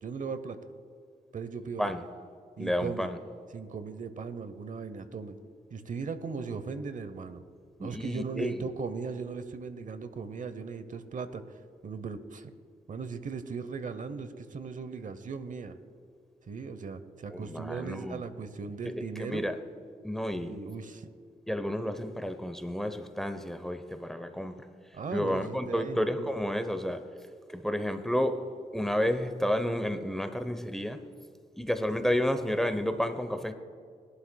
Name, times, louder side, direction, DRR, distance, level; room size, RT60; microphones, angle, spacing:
voice 1, 0.0-0.6 1.3-1.9 2.6-3.1 3.5-5.4 5.7-7.4 7.8-12.5 12.9-15.8 16.5-19.5 20.3-21.1 24.9-26.3, right 5 dB, 60° right, 11 dB, 0.9 m, -38 dB
voice 2, 2.6-3.2 7.8-8.7 17.3-18.2 18.8-18.9 19.2-19.5 20.0-20.5 21.5-24.7 25.1-27.0 27.5-28.4 28.7-31.0 31.6-33.5, equal, ahead, 9 dB, 0.9 m, -31 dB
20.5 x 11.5 x 2.3 m, 2.2 s
cardioid pair, 75°, 15 cm